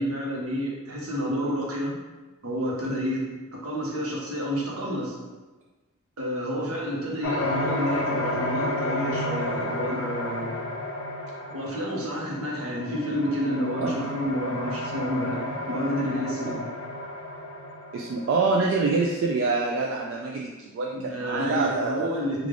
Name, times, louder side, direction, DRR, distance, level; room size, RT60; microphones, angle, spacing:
voice 1, 0.0-2.0 2.4-3.2 3.5-5.2 6.2-10.6 11.5-15.4 15.6-16.6 20.9-22.5, equal, 80° right, -3 dB, 0.9 m, -29 dB
sound 1, 7.2-18.7, left 1 dB, 55° left, 0.4 m, -32 dB
voice 2, 17.9-22.1, right 3 dB, 60° right, -1 dB, 0.3 m, -26 dB
3.3 x 2.4 x 3.7 m, 1.2 s
head